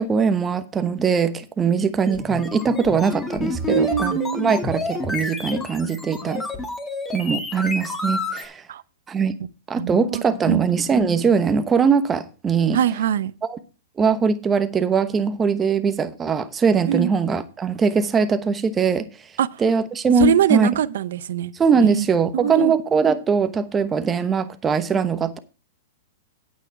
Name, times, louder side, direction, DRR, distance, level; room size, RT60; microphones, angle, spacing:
voice 1, 0.0-6.4 7.1-8.6 9.1-9.3 9.7-12.8 13.4-13.6 14.0-19.0 19.6-20.7 21.5-25.4, right 5 dB, 15° right, 1.0 m, -21 dB
sound 1, 2.1-8.4, left 3 dB, 15° left, 2.0 m, -29 dB
voice 2, 3.7-4.6 8.7-8.8 9.8-10.6 12.7-13.3 16.9-17.1 19.4-19.6 20.2-21.5 21.8-22.1 22.3-22.7, right 10 dB, 70° right, 0.7 m, -22 dB
9.0 x 8.5 x 4.7 m
hypercardioid pair, 140°, 0 cm